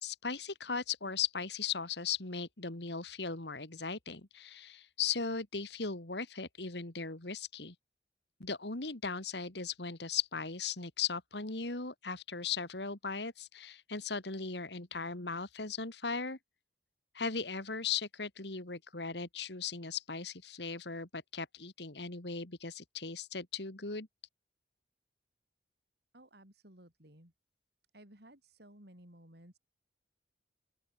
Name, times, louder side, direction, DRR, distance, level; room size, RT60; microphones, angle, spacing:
voice 1, 0.0-7.7 8.4-16.4 17.1-24.1, left 5 dB, 65° left, 2.4 m, -38 dB
voice 2, 26.1-27.3 27.9-29.6, right 1 dB, 60° right, 5.6 m, -57 dB
open air
head